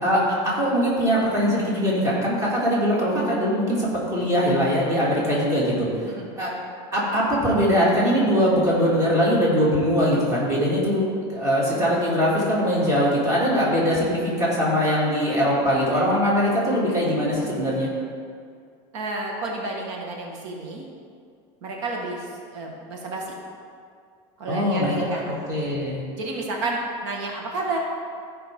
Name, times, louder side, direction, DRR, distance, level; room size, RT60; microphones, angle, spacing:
voice 1, 0.0-5.9 6.4-6.5 6.9-11.0 11.3-17.9 24.5-26.0, equal, 20° right, -5 dB, 2.5 m, -21 dB
voice 2, 18.9-20.8 21.6-23.3 24.4-25.5 26.1-27.8, right 2 dB, 85° right, -1 dB, 1.6 m, -31 dB
14.0 x 5.4 x 3.7 m, 2.2 s
supercardioid pair, 145°, 15 cm